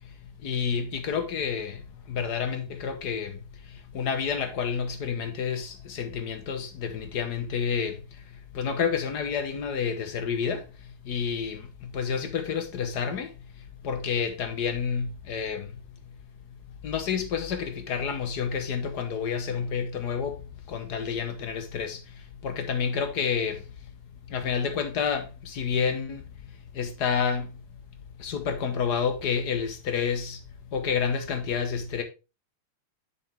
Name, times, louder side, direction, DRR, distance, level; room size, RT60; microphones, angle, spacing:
voice 1, 0.0-15.8 16.8-23.9 24.3-27.6 28.2-32.0, left 6 dB, 55° left, 1.4 m, -30 dB
7.1 x 7.0 x 3.3 m
omnidirectional pair, 2.4 m